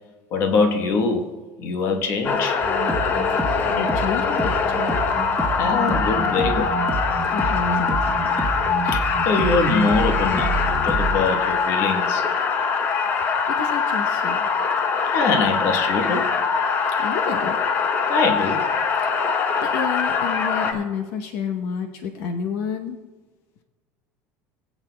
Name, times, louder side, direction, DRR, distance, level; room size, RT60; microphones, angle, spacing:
voice 1, 0.3-1.3 1.6-2.6 5.6-6.7 8.8-12.2 15.1-16.3 18.1-18.6, left 4 dB, 50° left, 5 dB, 1.1 m, -23 dB
sound 1, 2.2-20.7, left 5 dB, 35° left, 0.8 m, -23 dB
sound 2, 2.6-11.2, right 3 dB, 5° right, 1.1 m, -28 dB
voice 2, 3.7-5.1 7.3-8.4 13.2-14.5 17.0-17.6 19.0-23.0, left 6 dB, 75° left, 4 dB, 0.8 m, -30 dB
21.0 x 8.2 x 2.2 m, 1.3 s
cardioid pair, 150°, 6 cm